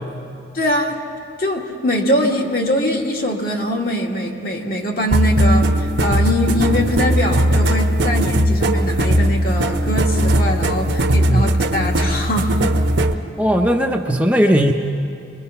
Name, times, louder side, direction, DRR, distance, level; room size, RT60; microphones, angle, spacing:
voice 1, 0.5-1.0 1.4-12.5, equal, 50° left, 0 dB, 2.1 m, -22 dB
sound 1, 5.1-13.2, right 1 dB, 60° right, 1.0 m, -18 dB
voice 2, 13.4-14.7, equal, 5° right, 1 dB, 0.7 m, -17 dB
25.5 x 22.0 x 5.7 m, 2.5 s
head